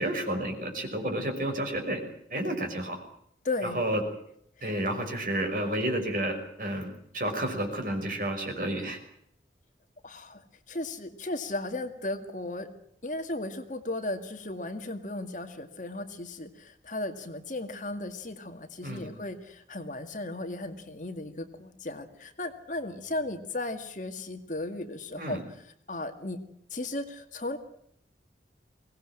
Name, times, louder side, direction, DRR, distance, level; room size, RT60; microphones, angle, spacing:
voice 1, 0.0-2.0 2.3-3.0 3.7-4.0 4.6-6.9 7.1-9.0 18.8-19.1 25.2-25.4, right 1 dB, 50° right, 4 dB, 5.7 m, -30 dB
voice 2, 3.4-3.8 4.6-4.7 10.0-12.7 13.0-26.4 26.7-27.6, left 2 dB, 45° left, 7 dB, 2.1 m, -36 dB
23.0 x 18.5 x 9.0 m, 0.71 s
head